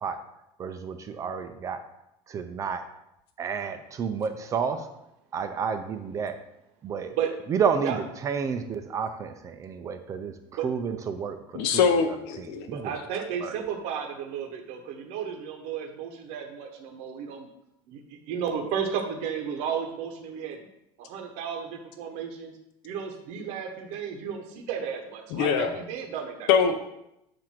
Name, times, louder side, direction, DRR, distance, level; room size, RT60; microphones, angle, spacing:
voice 1, 0.6-1.8 2.3-2.8 3.4-4.9 5.3-6.4 6.8-7.1 7.5-12.9 13.4-13.5, right 6 dB, 25° right, 8 dB, 0.4 m, -31 dB
voice 2, 11.5-12.7 25.3-25.8 26.5-26.8, left 6 dB, 80° left, 6 dB, 0.6 m, -23 dB
voice 3, 12.7-17.5 17.9-18.0 18.3-20.6 21.0-22.5 22.8-26.5, right 7 dB, 60° right, 3 dB, 0.8 m, -33 dB
7.4 x 2.6 x 5.7 m, 0.85 s
cardioid pair, 155°, 12 cm